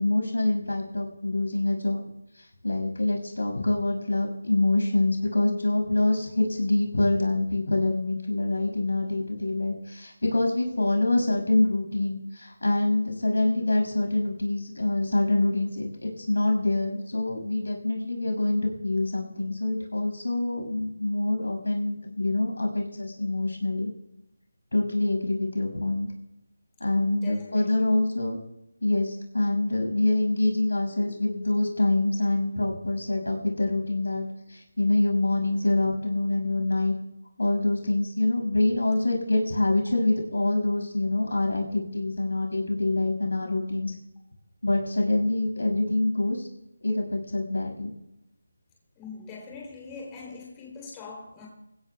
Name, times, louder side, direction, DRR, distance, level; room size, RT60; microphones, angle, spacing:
voice 1, 0.0-2.0 2.4-23.9 24.7-26.1 26.8-28.4 28.8-36.9 37.4-43.9 44.6-46.5 46.8-47.9, left 2 dB, 80° left, 1 dB, 6.1 m, -25 dB
voice 2, 27.0-28.0 49.0-51.5, left 4 dB, 15° left, -1 dB, 3.2 m, -43 dB
23.0 x 16.0 x 2.3 m, 0.88 s
figure-of-eight pair, 160°, 0 cm